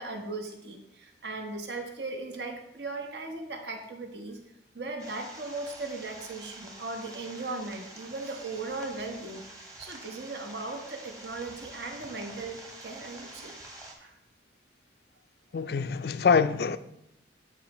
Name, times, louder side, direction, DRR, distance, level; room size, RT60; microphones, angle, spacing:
voice 1, 0.0-4.4 4.7-9.4 9.8-13.5 14.0-14.2 15.6-15.7, right 3 dB, 70° right, 1.1 m, -38 dB
sound 1, 5.0-13.9, right 2 dB, 20° right, 1.0 m, -47 dB
voice 2, 15.5-16.8, left 5 dB, 60° left, 0.3 m, -24 dB
13.0 x 4.5 x 3.0 m
head